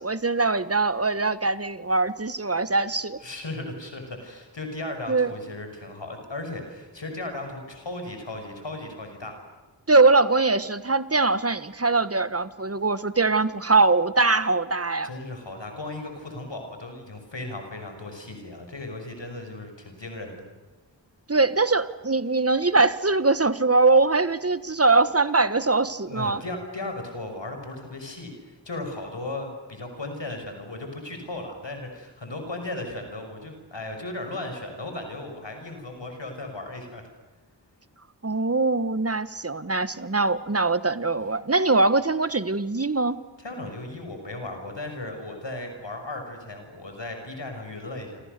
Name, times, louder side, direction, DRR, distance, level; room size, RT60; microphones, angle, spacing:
voice 1, 0.0-3.2 5.1-5.3 9.9-15.1 21.3-26.4 38.2-43.2, right 3 dB, 35° right, 14 dB, 1.4 m, -22 dB
voice 2, 3.2-9.4 15.0-20.4 26.1-37.0 43.4-48.2, left 2 dB, 80° left, 5 dB, 6.1 m, -36 dB
28.5 x 27.0 x 6.8 m, 1.2 s
wide cardioid pair, 55°, 43 cm